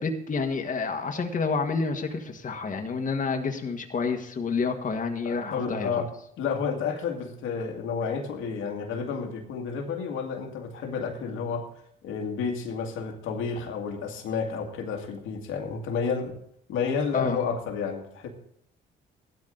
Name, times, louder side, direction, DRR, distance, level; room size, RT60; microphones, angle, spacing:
voice 1, 0.0-6.0 17.1-17.4, left 4 dB, 40° left, 4 dB, 1.6 m, -29 dB
voice 2, 5.3-6.1 6.4-11.7 12.0-16.4 16.7-18.3, left 5 dB, 90° left, 2 dB, 2.1 m, -31 dB
15.0 x 12.0 x 4.0 m, 0.69 s
cardioid pair, 90°, 20 cm